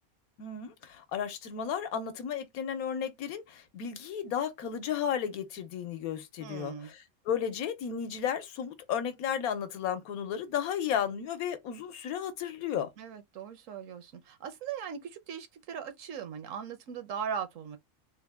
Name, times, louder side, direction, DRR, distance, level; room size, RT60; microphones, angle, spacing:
voice 1, 0.4-12.9, left 8 dB, 85° left, 1.2 m, -33 dB
voice 2, 6.4-6.9 13.0-17.8, right 7 dB, 70° right, 1.0 m, -39 dB
3.5 x 2.1 x 3.4 m
omnidirectional pair, 1.5 m